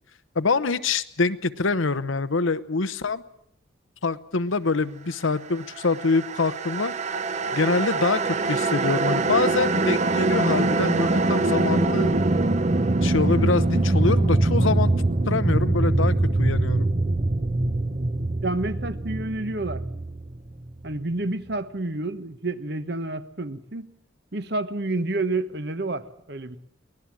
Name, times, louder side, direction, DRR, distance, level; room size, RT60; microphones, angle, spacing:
voice 1, 0.3-3.2 4.0-6.9 7.5-12.2 13.0-14.9 15.3-16.9, left 4 dB, 80° left, 1.0 m, -25 dB
sound 1, 5.7-20.9, right 2 dB, 35° right, 0.8 m, -23 dB
voice 2, 18.4-19.8 20.8-23.9 24.3-26.6, right 2 dB, 55° right, 1.1 m, -29 dB
23.5 x 18.5 x 7.4 m
head